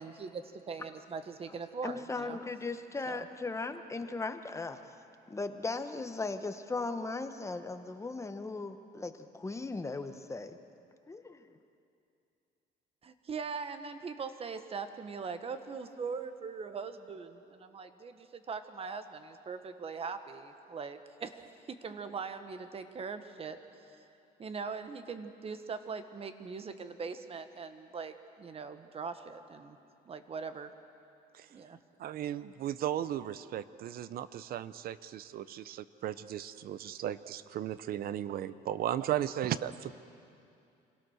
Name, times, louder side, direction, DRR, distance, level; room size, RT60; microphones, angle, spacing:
voice 1, 0.0-2.4 3.1-3.3 13.0-23.6 24.4-29.8 30.1-30.7 31.5-31.8, right 5 dB, 35° right, 9 dB, 1.3 m, -41 dB
voice 2, 1.8-4.9 5.3-10.6 11.1-11.4, left 3 dB, 15° left, 8 dB, 1.1 m, -37 dB
voice 3, 32.0-39.9, right 11 dB, 60° right, 15 dB, 0.7 m, -36 dB
26.0 x 17.0 x 6.5 m, 2.6 s
cardioid pair, 110°, 17 cm